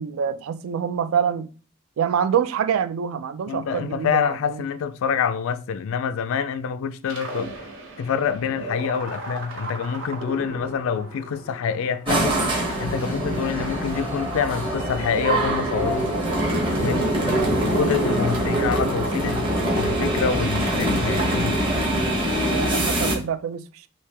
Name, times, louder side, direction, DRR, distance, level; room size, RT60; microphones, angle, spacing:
voice 1, 0.0-1.5 2.0-4.6 16.1-16.2 16.9-17.5 22.4-23.9, right 7 dB, 80° right, 0.3 m, -26 dB
voice 2, 3.5-7.5 8.0-16.1 16.8-21.6, left 6 dB, 75° left, 0.3 m, -26 dB
sound 1, 7.0-17.7, right 2 dB, 60° right, 0.9 m, -38 dB
sound 2, 12.1-23.1, right 1 dB, 25° right, 0.9 m, -23 dB
3.1 x 2.7 x 3.3 m
head